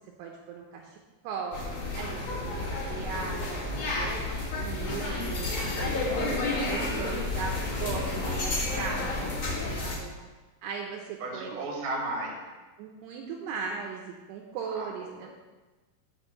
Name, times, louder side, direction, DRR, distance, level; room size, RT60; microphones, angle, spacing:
voice 1, 0.2-1.0 1.2-1.6 2.0-3.7 4.0-4.2 4.6-6.0 6.5-9.2 9.6-10.1 10.6-11.6 12.8-15.3, right 5 dB, 85° right, 0 dB, 2.9 m, -38 dB
sound 1, 1.5-9.9, left 2 dB, 45° left, 1.8 m, -31 dB
voice 2, 6.4-7.2 11.2-12.3 14.8-14.9, right 2 dB, 65° right, -1 dB, 3.5 m, -34 dB
6.4 x 6.2 x 6.6 m, 1.2 s
omnidirectional pair, 4.6 m